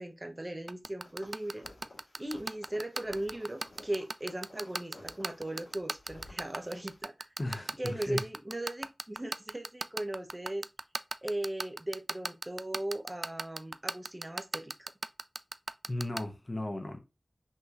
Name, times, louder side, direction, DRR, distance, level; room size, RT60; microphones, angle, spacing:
voice 1, 0.0-1.7 2.2-7.3 7.8-10.6 11.2-14.9, right 1 dB, 25° right, 0.9 m, -38 dB
sound 1, 0.7-16.2, right 3 dB, 55° right, 0.3 m, -34 dB
sound 2, 1.0-7.0, left 1 dB, 85° left, 2.1 m, -54 dB
voice 2, 7.4-8.2 15.9-17.0, left 1 dB, 40° left, 1.0 m, -35 dB
5.5 x 3.1 x 2.5 m
wide cardioid pair, 50°, 0 cm